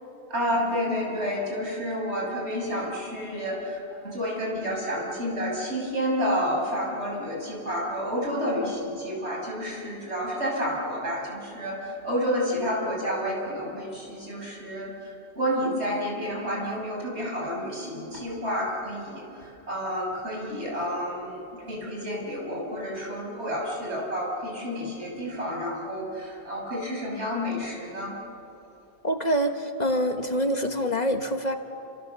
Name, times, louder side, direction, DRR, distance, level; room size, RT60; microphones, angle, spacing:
voice 1, 0.3-28.2, equal, 80° right, -2 dB, 6.8 m, -30 dB
voice 2, 29.0-31.6, equal, 40° left, 6 dB, 1.5 m, -25 dB
29.0 x 27.0 x 6.9 m, 3.0 s
omnidirectional pair, 1.1 m